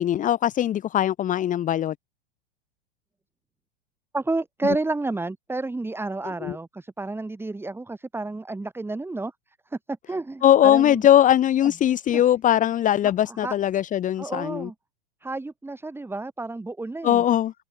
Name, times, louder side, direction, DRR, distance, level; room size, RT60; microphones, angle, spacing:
voice 1, 0.0-1.9 6.4-6.6 10.4-14.7 17.0-17.5, left 11 dB, 25° left, 1.9 m, -20 dB
voice 2, 4.1-9.3 9.7-11.0 11.6-11.7 12.1-12.2 13.0-13.6 14.2-14.7 15.2-17.2, right 2 dB, 5° right, 7.1 m, -31 dB
figure-of-eight pair, 95°, 33 cm